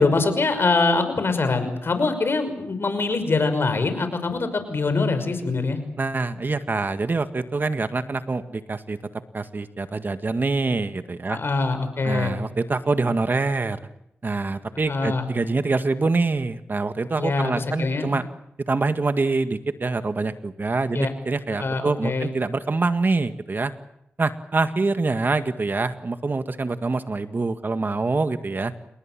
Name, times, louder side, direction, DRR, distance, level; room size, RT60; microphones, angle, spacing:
voice 1, 0.0-5.8 11.3-12.3 14.9-15.3 17.2-18.1 20.9-21.1 21.5-22.3, left 3 dB, 60° left, 9 dB, 5.7 m, -23 dB
voice 2, 6.0-9.0 9.3-11.4 12.0-13.8 14.2-18.2 18.7-23.7 24.2-28.7, right 3 dB, 45° right, 9 dB, 1.8 m, -25 dB
29.0 x 20.5 x 7.6 m, 0.79 s
cardioid pair, 50°, 5 cm